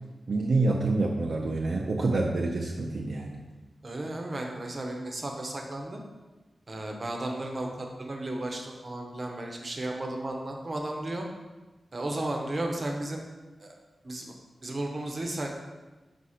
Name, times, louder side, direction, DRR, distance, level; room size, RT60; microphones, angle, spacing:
voice 1, 0.3-3.4, right 3 dB, 55° right, -1 dB, 0.5 m, -27 dB
voice 2, 3.8-6.0 6.7-11.2 11.9-13.2 13.6-13.7 14.0-14.3 14.6-15.5, right 1 dB, 35° right, 2 dB, 0.8 m, -34 dB
5.4 x 4.2 x 4.9 m, 1.2 s
wide cardioid pair, 145°, 0 cm